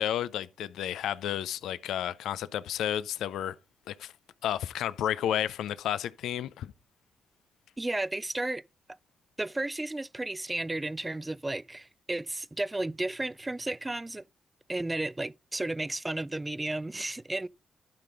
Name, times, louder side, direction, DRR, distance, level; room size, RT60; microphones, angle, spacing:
voice 1, 0.0-3.6 3.9-4.1 4.4-6.7, left 11 dB, 80° left, 0.4 m, -31 dB
voice 2, 7.8-8.6 9.4-14.2 14.7-17.5, right 2 dB, 20° right, 0.4 m, -33 dB
12.0 x 4.9 x 3.8 m
supercardioid pair, 50°, 0 cm